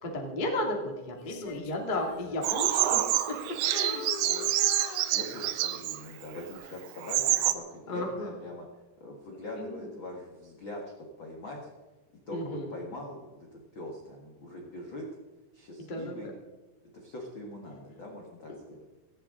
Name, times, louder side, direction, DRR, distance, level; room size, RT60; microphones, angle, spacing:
voice 1, 0.0-3.1 3.5-4.1 7.9-8.3 9.5-9.9 12.3-12.7 15.9-16.3, left 1 dB, 30° left, 1 dB, 0.8 m, -34 dB
Female singing, 1.2-3.5 3.7-5.8 6.3-6.5, left 9 dB, 90° left, 3.5 m, -43 dB
Bird vocalization bird call bird song, 2.4-6.0 6.6-6.7 7.0-7.5, right 15 dB, 85° right, 2.9 m, -27 dB
voice 2, 5.1-11.7 12.3-15.1 15.5-16.3 16.8-18.8, left 1 dB, 65° left, -1 dB, 1.2 m, -42 dB
16.5 x 15.0 x 3.8 m, 1.2 s
omnidirectional pair, 5.1 m